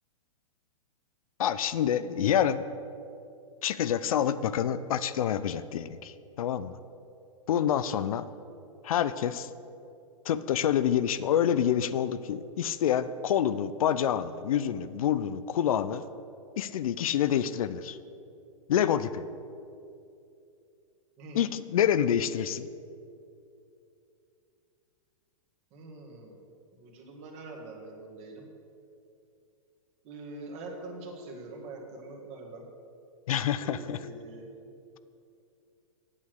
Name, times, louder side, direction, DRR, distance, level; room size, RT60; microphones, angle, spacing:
voice 1, 1.4-2.6 3.6-6.7 7.5-8.3 8.8-9.5 10.3-16.0 16.6-18.0 18.7-19.2 21.3-22.7 33.3-34.0, left 9 dB, 70° left, 14 dB, 0.5 m, -27 dB
voice 2, 25.7-26.4 26.7-28.5 30.0-32.7 33.6-34.5, right 2 dB, 35° right, 1 dB, 1.8 m, -44 dB
8.6 x 7.4 x 6.5 m, 2.6 s
hypercardioid pair, 130°, 18 cm